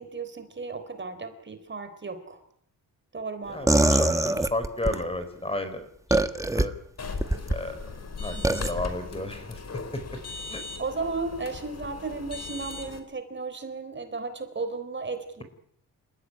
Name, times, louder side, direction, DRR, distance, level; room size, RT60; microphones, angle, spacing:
voice 1, 0.0-2.4 3.1-3.8 8.3-8.7 10.5-15.4, right 4 dB, 35° right, 9 dB, 3.8 m, -35 dB
voice 2, 3.5-6.7 7.5-7.8 8.2-9.6 9.9-10.2 10.5-10.6, left 1 dB, 15° left, 10 dB, 4.8 m, -33 dB
sound 1, 3.7-5.0 6.1-6.6 7.2-7.6 8.4-8.7, right 2 dB, 10° right, 1.4 m, -22 dB
sound 2, 7.0-13.0, left 4 dB, 50° left, 5.0 m, -38 dB
29.5 x 16.0 x 9.8 m, 0.66 s
wide cardioid pair, 120°, 34 cm